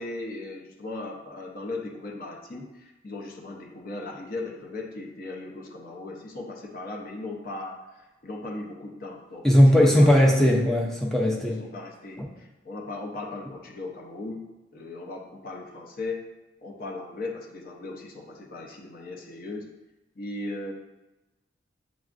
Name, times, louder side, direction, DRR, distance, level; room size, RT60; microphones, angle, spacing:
voice 1, 0.0-9.5 9.7-10.3 11.0-11.1 11.6-14.5 14.7-16.3 16.6-19.7 20.2-20.7, left 2 dB, 50° left, -1 dB, 0.6 m, -37 dB
voice 2, 9.4-11.7, equal, 5° left, -1 dB, 0.5 m, -18 dB
7.0 x 2.4 x 2.5 m, 1.0 s
head